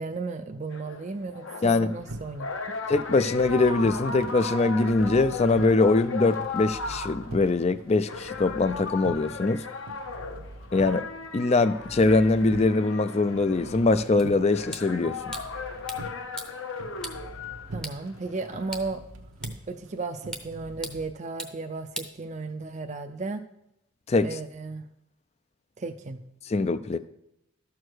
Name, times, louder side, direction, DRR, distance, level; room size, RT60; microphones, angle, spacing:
voice 1, 0.0-2.5 17.7-19.0 19.7-23.4 24.2-24.9 25.8-26.2, right 3 dB, 35° right, 0.5 m, -34 dB
sound 1, 0.7-18.9, left 4 dB, 65° left, 0.9 m, -37 dB
sound 2, 2.0-21.0, right 1 dB, 75° right, 0.9 m, -44 dB
voice 2, 2.9-9.6 10.7-11.0 11.3-15.2 24.1-24.3 26.5-27.0, left 3 dB, 30° left, 0.4 m, -22 dB
sound 3, 14.2-22.8, equal, 5° left, 0.7 m, -44 dB
12.5 x 4.7 x 6.3 m
head